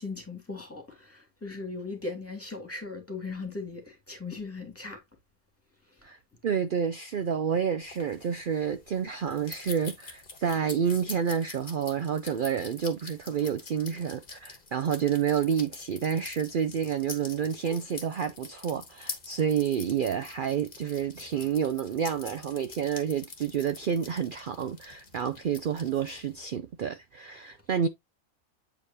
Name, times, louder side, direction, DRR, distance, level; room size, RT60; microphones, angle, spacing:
voice 1, 0.0-5.0, left 3 dB, 10° left, 2.2 m, -38 dB
voice 2, 6.0-27.9, right 7 dB, 85° right, 0.4 m, -29 dB
sound 1, 7.8-26.4, left 4 dB, 35° left, 1.4 m, -46 dB
8.2 x 4.9 x 2.7 m
omnidirectional pair, 1.5 m